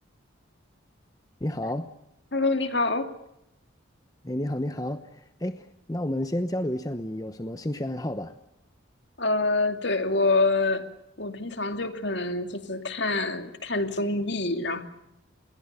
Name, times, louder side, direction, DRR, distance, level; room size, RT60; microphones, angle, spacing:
voice 1, 1.4-1.9 4.2-8.3, left 1 dB, 20° left, 9 dB, 0.9 m, -31 dB
voice 2, 2.3-3.1 9.2-10.8 11.2-14.8, left 3 dB, 60° left, 7 dB, 2.6 m, -26 dB
27.5 x 21.5 x 6.8 m, 0.84 s
head